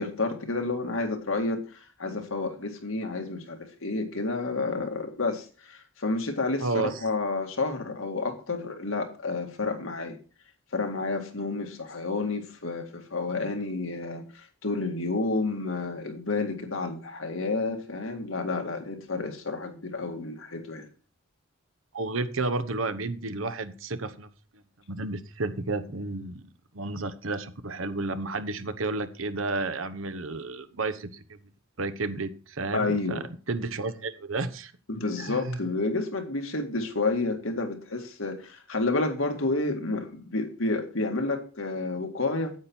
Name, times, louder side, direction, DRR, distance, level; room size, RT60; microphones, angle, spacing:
voice 1, 0.0-10.2 10.7-20.9 32.7-33.2 34.9-42.5, left 3 dB, 85° left, 4 dB, 2.1 m, -30 dB
voice 2, 6.6-6.9 21.9-24.3 24.9-26.5 26.7-31.4 31.8-33.2 33.5-34.7 35.2-35.6, right 3 dB, 80° right, 11 dB, 1.1 m, -31 dB
9.5 x 8.6 x 4.5 m, 0.37 s
head